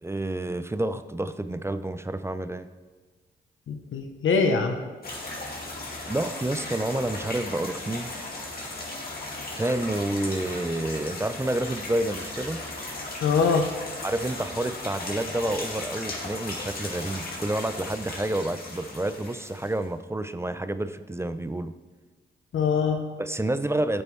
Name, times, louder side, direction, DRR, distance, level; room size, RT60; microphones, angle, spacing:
voice 1, 0.0-2.7 6.0-8.1 9.5-12.6 14.0-21.7 23.2-24.0, right 1 dB, 15° right, 12 dB, 0.4 m, -29 dB
voice 2, 3.7-4.8 13.2-13.7 22.5-23.0, left 5 dB, 75° left, 5 dB, 0.9 m, -23 dB
sound 1, 5.0-19.8, left 2 dB, 45° left, 2.1 m, -36 dB
8.9 x 8.5 x 3.2 m, 1.3 s
cardioid pair, 65°, 21 cm